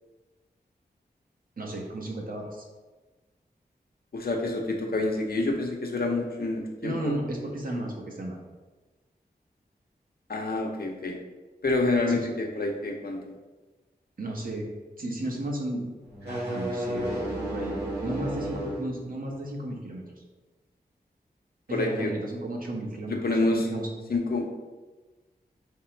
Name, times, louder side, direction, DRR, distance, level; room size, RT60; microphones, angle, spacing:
voice 1, 1.6-2.6 6.8-8.4 12.1-12.3 14.2-14.7 15.0-15.8 16.2-17.8 18.0-20.0 21.7-23.2 23.5-24.1, right 1 dB, 55° right, -1 dB, 0.9 m, -34 dB
voice 2, 4.1-7.1 10.3-11.2 11.6-13.2 21.7-22.1 23.1-23.7 24.1-24.4, left 2 dB, 65° left, 1 dB, 0.7 m, -27 dB
sound 1, 16.1-18.9, right 1 dB, 85° right, 1.5 m, -32 dB
3.6 x 3.0 x 4.4 m, 1.2 s
cardioid pair, 55°, 17 cm